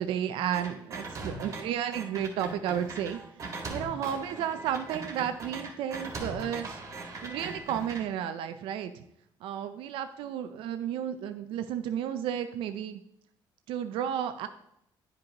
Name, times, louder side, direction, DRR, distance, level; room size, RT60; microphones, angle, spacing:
voice 1, 0.0-6.8 7.2-9.0 9.4-13.0 13.7-14.5, right 9 dB, 85° right, 9 dB, 0.5 m, -33 dB
sound 1, 0.5-1.6 1.9-8.0, right 3 dB, 35° right, 1.6 m, -39 dB
9.9 x 5.2 x 2.9 m, 0.75 s
cardioid pair, 130°, 9 cm